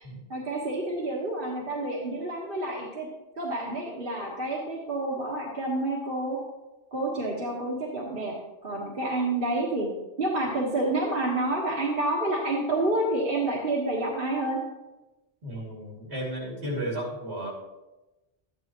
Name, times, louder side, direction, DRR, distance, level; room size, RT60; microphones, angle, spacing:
voice 1, 0.3-3.1 3.4-6.4 6.9-8.3 8.6-9.9 10.2-14.6, right 2 dB, 55° right, -4 dB, 1.7 m, -29 dB
voice 2, 15.4-17.5, right 1 dB, 75° right, -3 dB, 3.0 m, -33 dB
13.0 x 10.0 x 3.1 m, 1.0 s
omnidirectional pair, 1.1 m